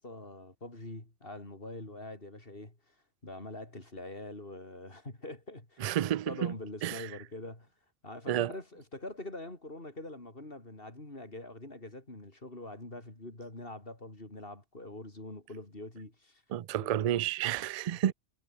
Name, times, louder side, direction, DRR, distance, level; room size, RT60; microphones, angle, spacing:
voice 1, 0.0-2.9 3.2-5.9 6.3-7.7 8.0-16.4 16.8-17.1 17.9-18.1, left 2 dB, 55° left, 4.9 m, -44 dB
voice 2, 5.8-6.5 6.8-7.1 8.3-8.5 16.5-18.1, right 11 dB, 60° right, 0.4 m, -30 dB
omnidirectional pair, 1.2 m